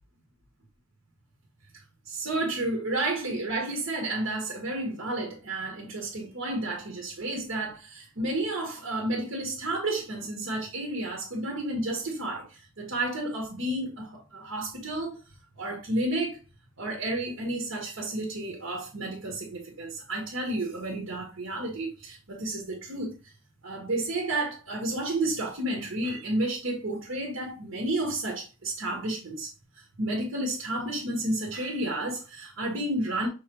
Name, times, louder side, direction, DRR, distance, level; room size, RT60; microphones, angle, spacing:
voice 1, 2.1-15.2 15.6-16.4 16.8-23.1 23.6-29.5 29.7-33.3, right 2 dB, 90° right, 1.2 m, -31 dB
5.5 x 3.2 x 3.0 m
head